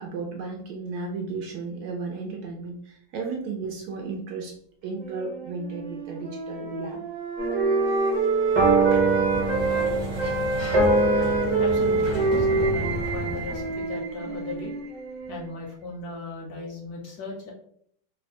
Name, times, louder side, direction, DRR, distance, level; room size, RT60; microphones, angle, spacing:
voice 1, 0.0-4.6 4.8-7.0, right 4 dB, 70° right, 1 dB, 1.0 m, -34 dB
Wind instrument woodwind instrument, 5.0-9.9 10.2-15.5, right 4 dB, 45° right, 0.5 m, -27 dB
sound 1, 7.4-14.1, right 2 dB, 20° right, 0.9 m, -26 dB
Sliding door, 8.5-13.8, left 1 dB, 35° left, 0.4 m, -33 dB
voice 2, 11.6-14.8 15.3-17.5, left 3 dB, 65° left, 0 dB, 1.0 m, -37 dB
3.0 x 2.3 x 4.1 m, 0.66 s
omnidirectional pair, 2.0 m